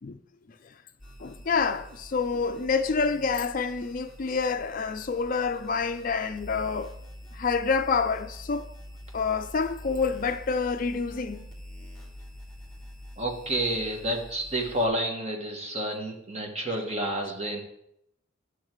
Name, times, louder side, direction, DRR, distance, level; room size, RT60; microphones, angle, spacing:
sound 1, 1.0-14.9, equal, 5° left, 2.1 m, -45 dB
voice 1, 1.2-6.9 7.3-8.7 9.1-11.5, left 5 dB, 40° left, 0.4 m, -27 dB
voice 2, 13.2-17.6, right 1 dB, 30° right, 1.4 m, -29 dB
10.5 x 6.4 x 4.6 m
head